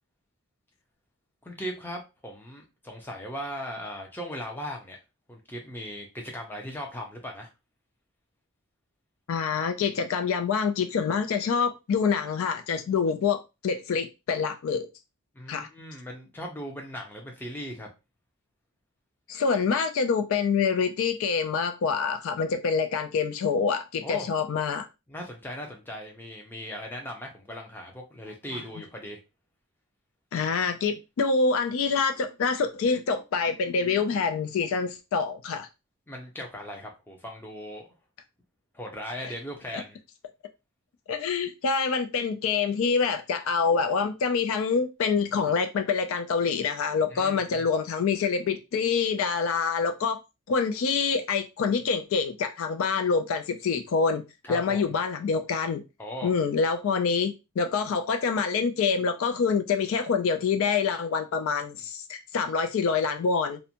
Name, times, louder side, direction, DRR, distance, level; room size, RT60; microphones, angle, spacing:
voice 1, 1.4-5.0 5.3-7.5 15.3-17.9 24.0-24.3 25.1-29.2 36.1-37.9 38.7-40.0 47.1-47.7 54.4-54.9 56.0-56.3, equal, 10° left, 0.5 m, -38 dB
voice 2, 9.3-14.9 15.5-15.7 19.3-24.9 30.3-35.7 41.1-50.2 50.5-54.2 54.5-55.8 56.2-63.6, left 5 dB, 65° left, 0.3 m, -26 dB
2.5 x 2.1 x 2.8 m
head